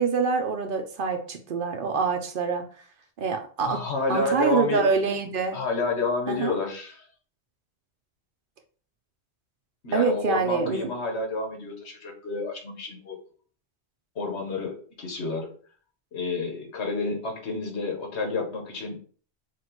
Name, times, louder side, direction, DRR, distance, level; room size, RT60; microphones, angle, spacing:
voice 1, 0.0-2.6 3.2-3.8 4.1-5.6 6.3-6.5 9.9-10.9, right 5 dB, 60° right, 6 dB, 0.7 m, -25 dB
voice 2, 3.6-4.8 5.5-7.0 9.8-13.2 14.1-15.5 16.1-19.0, left 3 dB, 90° left, 2 dB, 1.4 m, -29 dB
5.9 x 2.5 x 3.0 m, 0.43 s
omnidirectional pair, 1.1 m